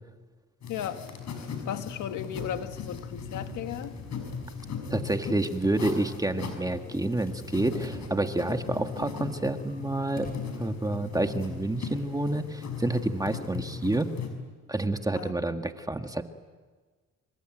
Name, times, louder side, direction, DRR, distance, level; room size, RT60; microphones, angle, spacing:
sound 1, 0.6-14.3, left 6 dB, 60° left, 6.0 m, -38 dB
voice 1, 0.7-1.0 1.4-3.9 15.2-15.3, left 10 dB, 85° left, 8 dB, 1.6 m, -36 dB
sound 2, 2.3-8.1, right 5 dB, 45° right, 4.1 m, -50 dB
voice 2, 4.9-10.3 10.6-14.1 14.7-16.2, right 2 dB, 10° right, 6 dB, 1.8 m, -29 dB
sound 3, 7.2-7.5 7.8-7.9 8.1-8.2 8.7-11.7, left 2 dB, 30° left, 4.8 m, -52 dB
27.0 x 24.0 x 9.1 m, 1.4 s
cardioid pair, 90°, 30 cm